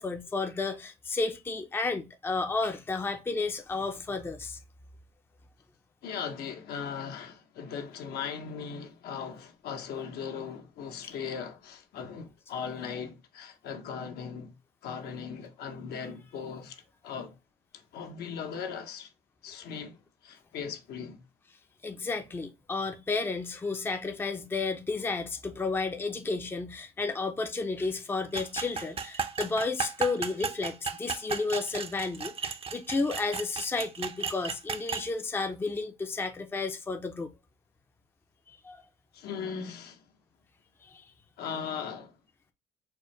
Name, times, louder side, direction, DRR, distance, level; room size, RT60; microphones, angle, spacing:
voice 1, 0.0-4.6 21.8-37.3 38.5-38.8 40.8-41.0, left 3 dB, 15° left, 0.5 m, -32 dB
voice 2, 6.0-14.5 14.8-17.3 17.9-19.1 19.4-20.0 20.2-21.2 39.1-40.0 41.4-42.1, left 6 dB, 70° left, 0.9 m, -38 dB
sound 1, 28.3-35.1, right 5 dB, 35° right, 0.6 m, -35 dB
4.5 x 2.1 x 3.0 m
cardioid pair, 110°, 17 cm